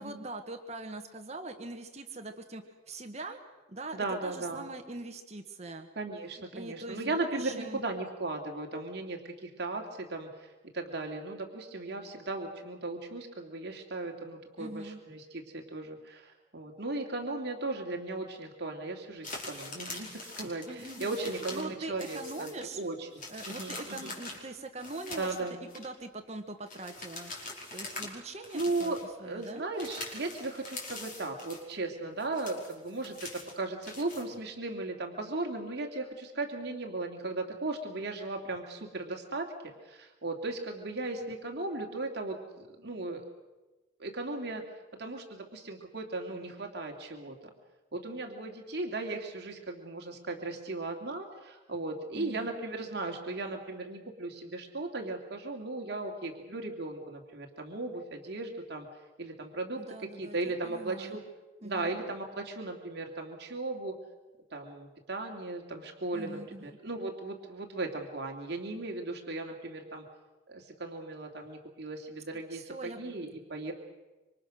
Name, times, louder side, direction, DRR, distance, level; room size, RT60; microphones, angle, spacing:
voice 1, 0.0-3.4 3.7-5.9 6.5-7.8 14.6-15.0 20.7-22.8 23.3-25.4 25.7-27.3 27.7-28.9 29.2-29.6 52.1-52.5 59.8-61.2 61.6-61.9 66.1-66.8 72.5-73.0, right 2 dB, 35° right, 5 dB, 1.4 m, -42 dB
voice 2, 3.9-4.7 6.0-23.1 23.5-24.1 25.2-25.6 28.5-39.5 39.8-43.2 44.0-44.6 45.0-47.3 47.9-58.9 59.2-61.2 61.6-64.0 64.5-70.0 70.5-73.7, right 2 dB, 55° right, 2 dB, 2.7 m, -37 dB
sound 1, 19.2-21.7 22.0-22.8 23.1-25.9 26.7-28.2 28.4-29.1 29.4-31.7 32.1-34.3, left 2 dB, 40° left, 5.2 m, -43 dB
26.5 x 25.0 x 6.4 m, 1.2 s
head